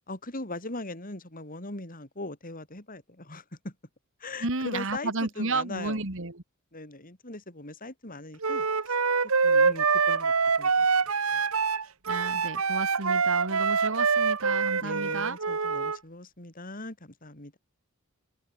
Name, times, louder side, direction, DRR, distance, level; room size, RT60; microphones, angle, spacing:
voice 1, 0.1-3.7 4.2-6.0 6.7-9.0 9.4-10.3 10.6-10.9 11.3-11.4 14.8-17.6, left 2 dB, 40° left, 5.5 m, -40 dB
voice 2, 4.4-6.4 12.1-15.4, right 3 dB, 65° right, 2.3 m, -32 dB
Wind instrument woodwind instrument, 8.4-16.0, right 5 dB, 85° right, 1.7 m, -25 dB
head